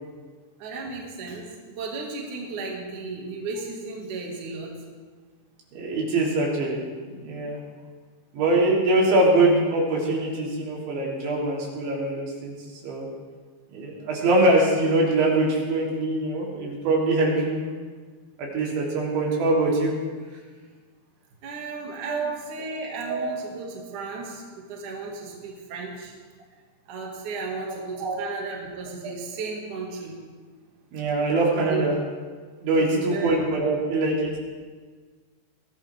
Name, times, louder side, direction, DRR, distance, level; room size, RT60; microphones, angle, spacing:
voice 1, 0.6-4.8 21.4-26.1 26.9-30.2 31.5-31.9 32.8-33.4, right 4 dB, 50° right, -1 dB, 3.2 m, -34 dB
voice 2, 5.7-6.8 7.1-7.6 8.3-12.5 12.8-13.1 13.7-17.6 18.4-19.9 22.1-22.3 23.1-23.3 27.7-28.3 29.0-29.1 30.9-31.9 32.6-34.3, right 2 dB, 80° right, -3 dB, 5.8 m, -23 dB
22.5 x 17.0 x 3.6 m, 1.5 s
omnidirectional pair, 5.2 m